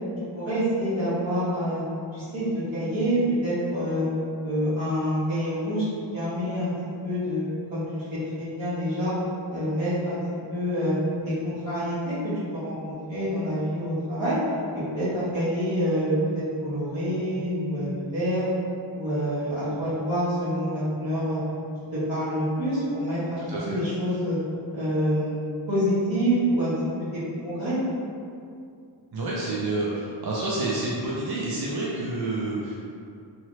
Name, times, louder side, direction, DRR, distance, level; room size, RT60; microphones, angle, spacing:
voice 1, 0.3-1.8 2.1-4.1 4.4-5.8 6.1-6.7 7.0-7.4 7.7-9.1 9.5-11.0 11.2-14.4 14.7-18.5 18.9-21.4 21.9-24.4 24.7-25.3 25.7-26.7 27.1-27.8, equal, 80° right, -12 dB, 1.3 m, -27 dB
voice 2, 29.1-32.7, right 2 dB, 55° right, -6 dB, 0.5 m, -28 dB
2.8 x 2.3 x 3.1 m, 2.4 s
wide cardioid pair, 55°, 46 cm